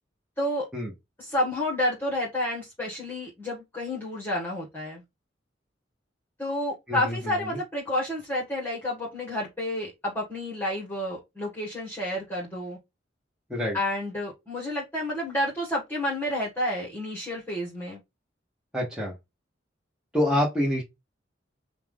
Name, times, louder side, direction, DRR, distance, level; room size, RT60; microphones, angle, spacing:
voice 1, 1.2-5.0 6.4-12.8 13.7-18.0, left 1 dB, 10° left, 1.6 m, -30 dB
voice 2, 6.9-7.6 13.5-13.8 18.7-19.1 20.1-20.8, left 1 dB, 5° right, 1.2 m, -27 dB
5.6 x 2.5 x 3.6 m
head